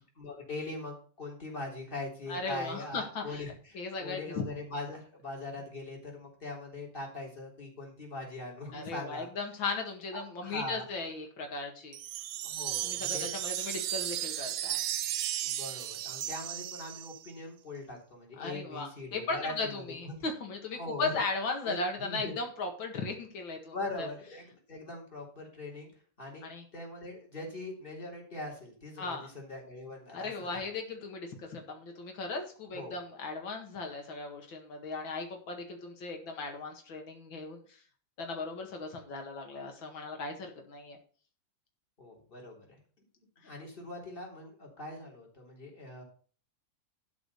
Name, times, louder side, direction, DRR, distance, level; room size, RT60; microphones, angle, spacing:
voice 1, 0.0-9.3 10.1-10.9 12.4-13.3 15.4-20.2 20.8-21.1 21.6-22.3 23.7-25.9 26.2-30.6 32.7-33.0 42.0-42.8 43.4-46.0, left 2 dB, 25° left, -1 dB, 3.7 m, -41 dB
voice 2, 2.3-4.4 8.7-12.0 12.8-14.8 18.4-24.1 26.4-26.6 29.0-29.3 30.1-37.6 38.2-41.0 43.4-43.5, left 3 dB, 90° left, 3 dB, 2.6 m, -37 dB
sound 1, 11.9-17.3, right 13 dB, 75° right, 1.3 m, -35 dB
12.5 x 5.0 x 6.8 m, 0.42 s
omnidirectional pair, 2.1 m